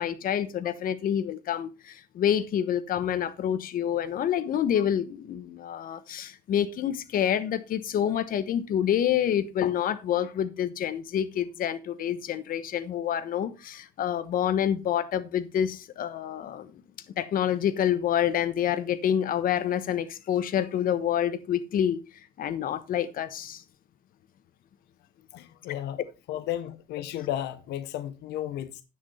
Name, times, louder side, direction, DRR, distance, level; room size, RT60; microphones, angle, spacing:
voice 1, 0.0-16.7 17.2-22.0 22.4-23.6, left 9 dB, 55° left, 1.1 m, -27 dB
voice 2, 25.3-26.0 26.3-28.8, left 12 dB, 80° left, 0.9 m, -33 dB
9.8 x 7.7 x 4.2 m
cardioid pair, 110°, 17 cm